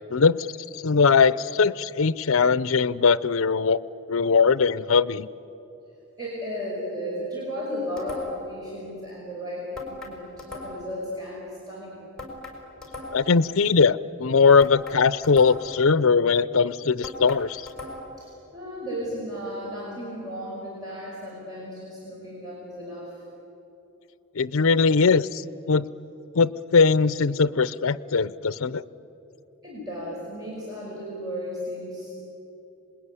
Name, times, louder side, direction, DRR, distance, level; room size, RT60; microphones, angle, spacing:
voice 1, 0.1-0.5 0.7-3.8 4.1-5.3 13.1-17.6 24.3-25.8 26.3-28.8, left 5 dB, 65° left, 18 dB, 0.6 m, -20 dB
voice 2, 6.2-12.0 18.2-23.2 29.6-32.1, equal, 20° right, -5 dB, 5.3 m, -34 dB
sound 1, 8.0-8.6 9.7-11.0 12.2-13.4 14.6-15.8 17.0-18.2, left 2 dB, 5° left, 4.9 m, -39 dB
27.0 x 21.0 x 9.8 m, 3.0 s
head